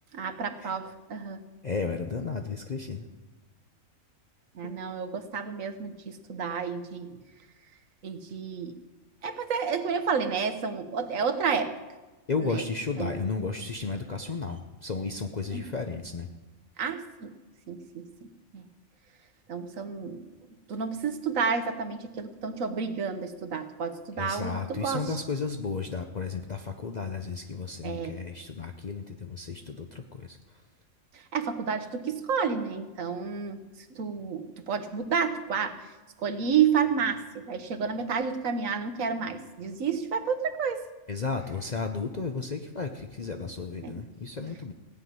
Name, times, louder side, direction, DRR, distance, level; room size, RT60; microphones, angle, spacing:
voice 1, 0.1-1.4 4.5-7.2 8.0-8.8 9.2-11.7 12.4-12.6 13.0-13.1 15.5-15.6 16.8-17.3 17.7-18.1 18.5-18.6 19.5-20.2 20.7-25.2 27.8-28.2 31.1-33.6 33.9-35.8 36.2-40.8 43.8-43.9, right 6 dB, 80° right, 9 dB, 1.4 m, -30 dB
voice 2, 1.6-3.1 4.6-4.7 12.3-16.3 24.2-30.4 41.1-44.7, left 4 dB, 40° left, 5 dB, 0.7 m, -33 dB
16.5 x 5.9 x 9.3 m, 1.2 s
omnidirectional pair, 1.4 m